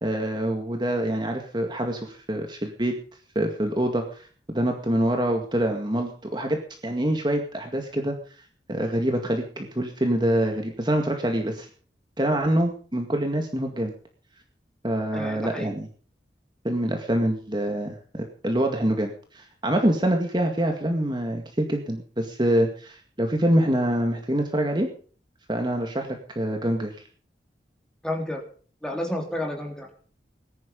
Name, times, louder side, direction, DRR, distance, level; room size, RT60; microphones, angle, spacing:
voice 1, 0.0-3.0 3.4-8.1 8.7-11.7 12.2-13.9 14.8-15.9 16.6-24.9 25.5-27.0, right 1 dB, 25° right, 3 dB, 2.0 m, -25 dB
voice 2, 15.1-15.7 28.0-28.4 28.8-29.9, left 1 dB, 5° left, 1 dB, 3.3 m, -30 dB
19.5 x 11.0 x 5.3 m, 0.43 s
head